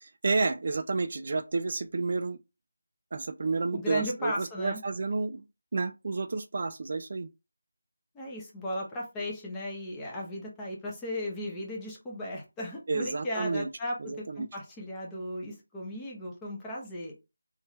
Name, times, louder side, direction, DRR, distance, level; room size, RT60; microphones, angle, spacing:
voice 1, 0.0-2.4 3.1-5.4 5.7-7.3 12.9-13.7 14.0-14.5, right 3 dB, 45° right, 0.4 m, -30 dB
voice 2, 3.7-4.8 8.1-17.1, left 1 dB, 10° left, 0.9 m, -36 dB
3.5 x 2.7 x 3.1 m
figure-of-eight pair, 165°, 0 cm